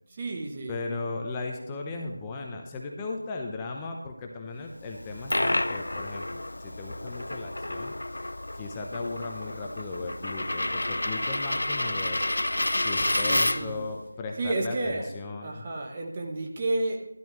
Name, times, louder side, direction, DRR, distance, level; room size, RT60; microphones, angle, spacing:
voice 1, 0.1-0.8 13.2-13.8 14.4-15.1 15.4-17.1, right 2 dB, 20° right, 1 dB, 1.0 m, -31 dB
voice 2, 0.7-12.2 12.7-15.6, left 3 dB, 10° left, 1 dB, 0.7 m, -37 dB
Coin (dropping), 4.9-13.8, left 1 dB, 60° left, 0.4 m, -30 dB
12.0 x 12.0 x 3.2 m, 0.86 s
figure-of-eight pair, 170°, 0 cm